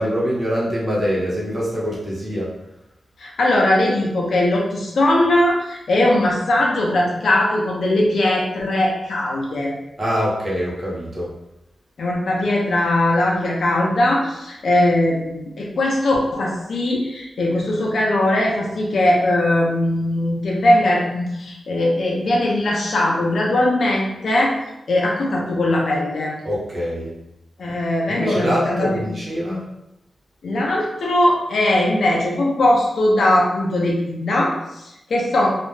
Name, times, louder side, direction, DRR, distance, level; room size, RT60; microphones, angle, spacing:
voice 1, 0.0-2.5 10.0-11.3 26.4-27.1 28.1-29.6, equal, 40° right, -6 dB, 0.9 m, -24 dB
voice 2, 3.2-9.7 12.0-24.5 24.9-26.4 27.6-29.1 30.4-35.5, left 1 dB, 75° left, -3 dB, 0.6 m, -20 dB
2.4 x 2.1 x 3.1 m, 0.87 s
wide cardioid pair, 105°, 0 cm